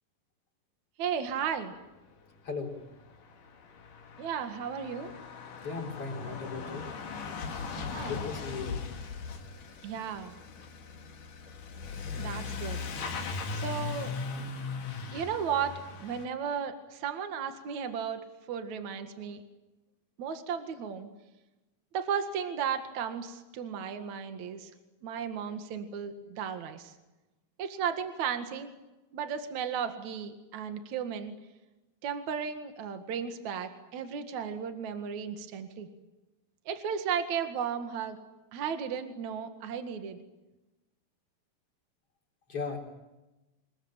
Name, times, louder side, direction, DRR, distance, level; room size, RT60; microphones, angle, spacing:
voice 1, 1.0-1.8 4.2-5.1 7.9-8.1 9.8-10.4 12.2-12.8 13.5-14.1 15.1-18.2 18.5-19.4 20.2-21.1 21.9-24.7 25.0-26.9 27.6-28.7 29.1-31.3 32.0-35.9 36.7-38.2 38.5-40.2, right 7 dB, 60° right, 7 dB, 3.1 m, -34 dB
Truck / Accelerating revving vroom, 2.6-2.7 2.8-16.3, left 4 dB, 65° left, 3.8 m, -39 dB
voice 2, 5.6-6.8 8.1-8.9 42.5-42.8, left 4 dB, 40° left, 1 dB, 5.0 m, -36 dB
27.0 x 22.0 x 9.0 m, 1.0 s
omnidirectional pair, 4.0 m